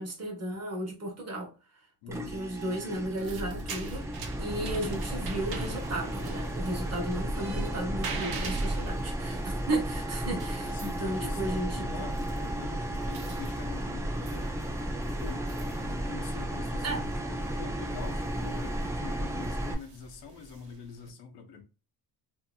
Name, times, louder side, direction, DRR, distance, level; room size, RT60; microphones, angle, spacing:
voice 1, 0.0-1.5 2.1-4.1 4.4-12.1 16.8-17.0, right 1 dB, 40° right, 1.0 m, -34 dB
voice 2, 2.0-2.4 4.6-4.9 10.6-14.8 15.1-15.5 15.8-21.6, left 6 dB, 75° left, 0.8 m, -45 dB
sound 1, 2.1-19.7, right 1 dB, 5° right, 0.4 m, -34 dB
sound 2, 2.9-21.1, right 3 dB, 60° right, 0.8 m, -44 dB
2.7 x 2.6 x 2.6 m
cardioid pair, 115°, 41 cm